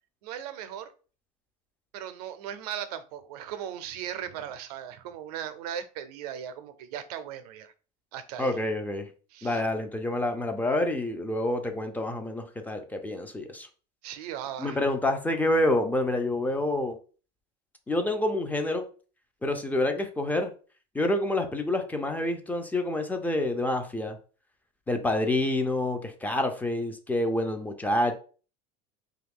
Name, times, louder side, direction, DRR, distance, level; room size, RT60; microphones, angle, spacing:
voice 1, 0.2-0.9 1.9-7.7 8.1-8.5 9.3-9.6 14.0-14.8, right 9 dB, 85° right, 0.5 m, -38 dB
voice 2, 8.4-9.1 9.4-13.7 14.6-17.0 17.9-18.8 19.4-20.5 20.9-24.2 24.9-28.2, left 1 dB, 10° left, 0.3 m, -27 dB
2.7 x 2.3 x 3.4 m
supercardioid pair, 135°, 19 cm